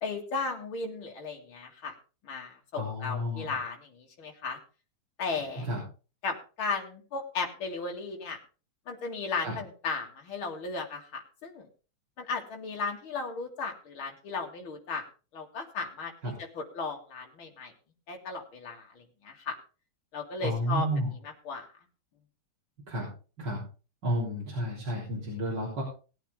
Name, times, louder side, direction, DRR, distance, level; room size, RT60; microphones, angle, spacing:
voice 1, 0.0-2.0 2.2-4.6 5.2-5.7 6.2-8.4 8.9-11.7 12.2-15.0 15.3-17.7 18.1-19.6 20.1-20.9 21.2-21.7, left 4 dB, 70° left, 1 dB, 3.0 m, -35 dB
voice 2, 2.8-3.5 5.6-5.8 9.4-9.6 16.2-16.3 20.4-21.1 22.9-23.1 23.4-23.6 24.0-25.8, equal, 50° right, -5 dB, 4.2 m, -31 dB
19.0 x 9.0 x 3.6 m, 0.35 s
omnidirectional pair, 2.4 m